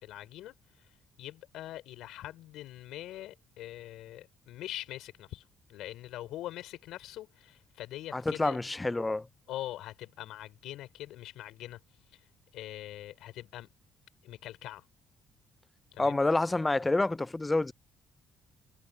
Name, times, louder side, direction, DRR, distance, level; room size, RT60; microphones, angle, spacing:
voice 1, 0.0-8.6 9.5-11.8 12.1-12.3 12.5-13.7 14.2-14.9 15.9-16.2, left 14 dB, 80° left, 5.5 m, -43 dB
voice 2, 8.1-9.3 16.0-17.7, left 2 dB, 15° left, 0.3 m, -28 dB
cardioid pair, 130°, 0 cm